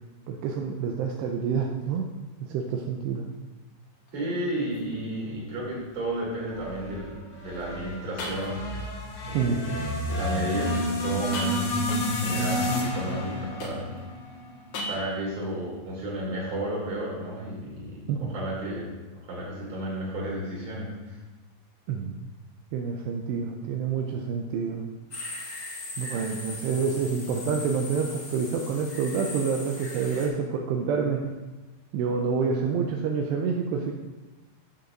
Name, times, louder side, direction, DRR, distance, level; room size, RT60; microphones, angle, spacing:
voice 1, 0.3-2.1 2.4-3.3 9.3-9.6 18.1-18.3 21.9-22.2 22.7-24.8 26.0-31.3 31.9-33.9, right 5 dB, 80° right, 1 dB, 2.7 m, -28 dB
sound 1, 3.8-4.2 4.7-4.8 5.5-5.6 7.6-7.7 8.2-8.9 11.2-12.3 13.6-14.2 14.7-15.4, left 1 dB, 70° left, 3.3 m, -37 dB
voice 2, 4.1-8.6 9.3-13.9 14.9-18.9 19.2-21.2, right 1 dB, 40° right, -4 dB, 3.4 m, -33 dB
sound 2, 6.5-14.8, equal, 85° left, 4.9 m, -30 dB
sound 3, 25.1-30.3, left 2 dB, 35° left, 2.4 m, -39 dB
14.5 x 6.9 x 2.6 m, 1.2 s
omnidirectional pair, 5.0 m